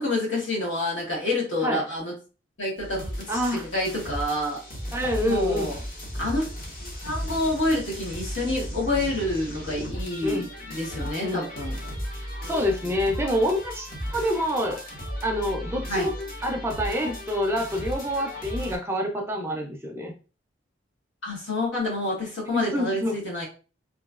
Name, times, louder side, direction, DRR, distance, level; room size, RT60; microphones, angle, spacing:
voice 1, 0.0-2.1 2.6-4.6 5.2-5.8 6.2-6.5 6.8-11.8 15.9-16.1 21.2-23.4, left 1 dB, 70° left, -4 dB, 1.3 m, -28 dB
sound 1, 2.8-18.8, equal, 45° left, 0.8 m, -35 dB
voice 2, 3.3-3.7 4.9-5.7 10.2-10.5 11.2-11.5 12.4-14.8 15.2-16.1 16.4-20.1 22.5-23.2, equal, 10° right, 2 dB, 0.4 m, -27 dB
2.9 x 2.6 x 2.3 m, 0.35 s
head